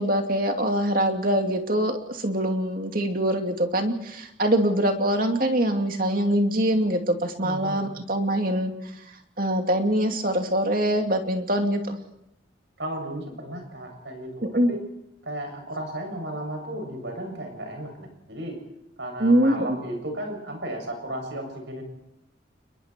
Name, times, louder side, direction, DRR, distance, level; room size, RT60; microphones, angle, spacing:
voice 1, 0.0-8.7 9.4-12.0 14.4-14.7 19.2-19.6, right 1 dB, 50° right, 4 dB, 2.6 m, -23 dB
voice 2, 7.4-7.9 12.8-14.8 15.2-18.6 19.0-21.8, right 1 dB, 70° right, 4 dB, 7.2 m, -34 dB
29.5 x 22.0 x 4.6 m, 0.82 s
head